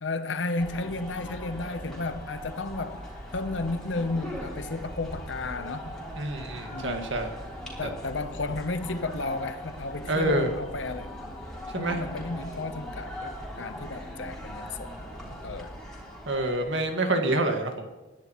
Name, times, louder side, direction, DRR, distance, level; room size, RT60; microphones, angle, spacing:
voice 1, 0.0-3.1 3.3-6.0 6.7-7.2 7.8-11.1 11.7-14.9 15.4-15.8, left 3 dB, 75° left, 0.9 m, -33 dB
sound 1, 0.6-16.9, equal, 5° left, 3.6 m, -40 dB
voice 2, 6.2-7.3 7.8-7.9 10.1-10.5 11.7-12.0 16.3-17.9, right 1 dB, 80° right, 1.8 m, -27 dB
21.5 x 10.5 x 3.1 m
head